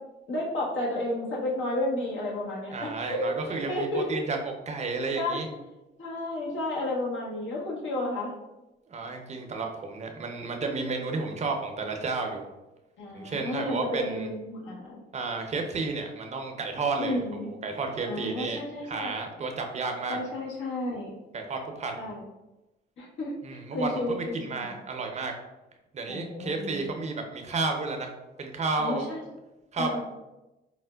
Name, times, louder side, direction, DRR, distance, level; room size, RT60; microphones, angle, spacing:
voice 1, 0.3-4.2 5.1-5.4 6.0-8.3 10.6-11.0 13.0-15.0 17.0-17.5 18.1-19.1 20.1-21.1 22.0-22.2 23.0-23.3 23.7-24.7 26.1-26.8 28.8-29.2 29.8-30.0, left 1 dB, 75° left, -4 dB, 1.0 m, -32 dB
voice 2, 2.7-5.5 8.9-12.4 13.1-14.3 15.1-20.2 21.3-22.1 23.4-25.3 25.9-28.1 28.4-29.1 29.7-30.0, right 3 dB, 35° right, 3 dB, 0.5 m, -32 dB
4.3 x 2.1 x 2.2 m, 1.0 s
cardioid pair, 90°, 20 cm